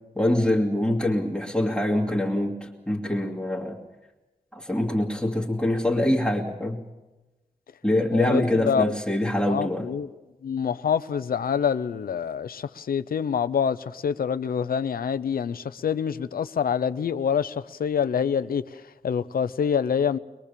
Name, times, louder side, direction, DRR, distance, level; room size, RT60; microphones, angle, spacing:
voice 1, 0.2-3.8 4.5-6.8 7.8-9.9, left 1 dB, 5° left, 2.2 m, -24 dB
voice 2, 8.1-8.9 9.5-10.1 10.4-20.2, left 7 dB, 85° left, 0.8 m, -26 dB
22.5 x 22.0 x 6.9 m
wide cardioid pair, 95°, 15 cm